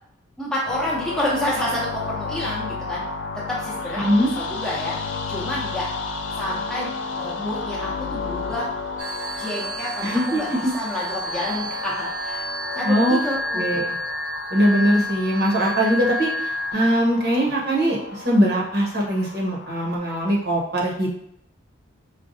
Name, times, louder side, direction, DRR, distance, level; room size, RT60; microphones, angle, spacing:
voice 1, 0.4-3.0 3.5-4.1 4.3-5.0 5.3-5.9 6.4-8.7 9.4-12.4 12.8-13.6, left 1 dB, 5° left, -6 dB, 0.7 m, -29 dB
sound 1, 0.7-20.0, left 4 dB, 65° left, 0.4 m, -33 dB
voice 2, 4.0-4.3 10.0-10.4 12.8-13.2 13.5-13.9 14.5-21.1, equal, 50° right, -4 dB, 0.9 m, -21 dB
sound 2, 9.0-16.7, equal, 80° right, 0.4 m, -30 dB
5.1 x 2.3 x 2.6 m, 0.74 s
head